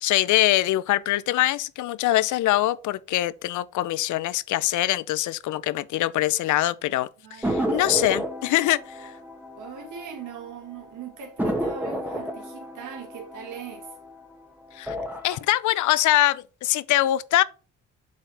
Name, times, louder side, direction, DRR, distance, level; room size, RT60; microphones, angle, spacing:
voice 1, 0.0-7.1 7.4-9.1 14.8-14.9 15.2-17.4, left 15 dB, 75° left, 0.5 m, -23 dB
voice 2, 7.2-7.8 9.6-13.9, right 7 dB, 80° right, 2.2 m, -40 dB
sound 1, 7.4-10.5 10.8-10.9 11.4-14.3 14.7-15.4, equal, 5° right, 1.8 m, -31 dB
7.4 x 4.5 x 3.4 m
cardioid pair, 90°, 30 cm